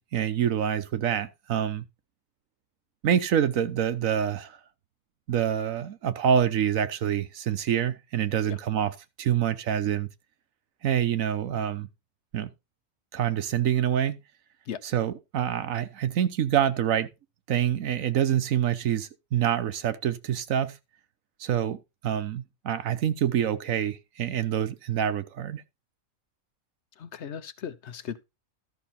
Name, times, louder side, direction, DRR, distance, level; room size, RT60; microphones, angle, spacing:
voice 1, 0.0-1.8 3.0-4.6 5.3-10.1 10.8-11.9 12.3-12.5 13.1-14.2 14.8-17.1 17.5-20.8 21.4-25.6, right 9 dB, 85° right, 1.3 m, -26 dB
voice 2, 27.0-28.2, left 8 dB, 60° left, 1.0 m, -37 dB
12.5 x 6.0 x 4.2 m
omnidirectional pair, 1.4 m